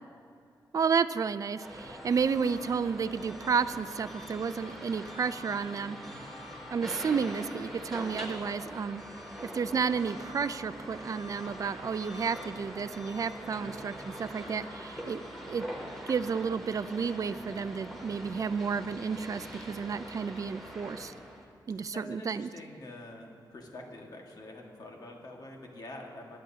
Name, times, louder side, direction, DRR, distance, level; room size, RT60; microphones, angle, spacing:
voice 1, 0.7-6.0 6.7-9.0 9.4-15.2 15.5-15.7 16.1-21.1 21.7-22.5, right 6 dB, 45° right, 13 dB, 0.4 m, -31 dB
sound 1, 1.5-20.5, equal, 80° left, 3.0 m, -54 dB
sound 2, 1.6-21.4, equal, 5° left, 2.2 m, -43 dB
voice 2, 21.7-26.4, left 2 dB, 55° left, 0 dB, 1.7 m, -46 dB
21.0 x 10.5 x 2.8 m, 2.3 s
wide cardioid pair, 100°, 8 cm